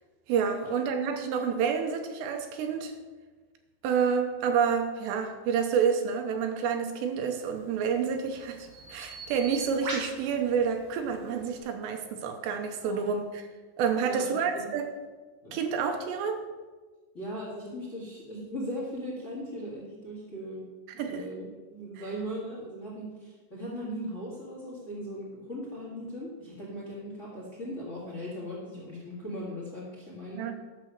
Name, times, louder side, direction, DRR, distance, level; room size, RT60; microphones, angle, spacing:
voice 1, 0.3-2.9 3.8-13.4 13.8-14.9 15.5-16.4 21.0-21.3 22.0-22.1 30.4-30.5, right 6 dB, 80° right, 5 dB, 2.8 m, -29 dB
Bird vocalization bird call bird song, 7.4-11.6, right 3 dB, 40° right, 4.3 m, -42 dB
voice 2, 12.8-13.1 14.1-14.8 15.4-15.6 17.1-20.7 21.0-30.5, equal, 60° left, -4 dB, 0.7 m, -38 dB
11.5 x 6.8 x 6.3 m, 1.3 s
omnidirectional pair, 5.4 m